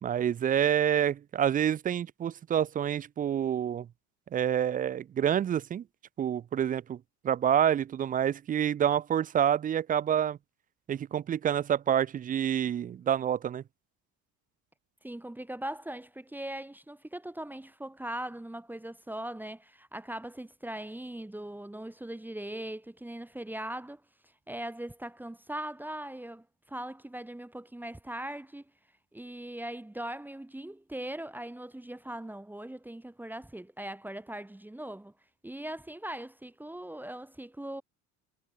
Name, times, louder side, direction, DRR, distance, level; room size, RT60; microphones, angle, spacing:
voice 1, 0.0-3.9 4.3-5.8 6.2-7.0 7.2-10.4 10.9-13.6, right 9 dB, 25° right, 0.4 m, -27 dB
voice 2, 15.0-24.0 24.5-28.6 29.1-35.1 35.4-37.8, right 1 dB, 5° right, 3.1 m, -40 dB
cardioid pair, 150°, 37 cm